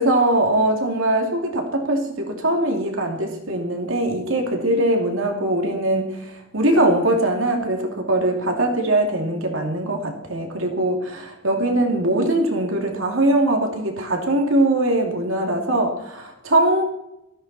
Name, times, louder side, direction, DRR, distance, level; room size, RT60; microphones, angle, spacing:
voice 1, 0.0-16.8, right 1 dB, 65° right, 3 dB, 2.6 m, -21 dB
18.5 x 14.5 x 4.3 m, 0.86 s
head